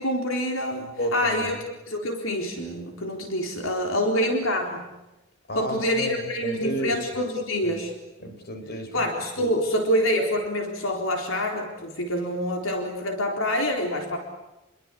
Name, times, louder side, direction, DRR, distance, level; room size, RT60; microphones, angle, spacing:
voice 1, 0.0-1.5 1.9-4.9 5.5-7.9 8.9-14.2, equal, 75° left, 2 dB, 4.1 m, -26 dB
voice 2, 0.8-1.6 5.5-7.3 7.6-7.8 8.2-9.1 9.4-9.5, equal, 50° left, 5 dB, 5.1 m, -32 dB
30.0 x 22.5 x 8.6 m, 1.0 s
head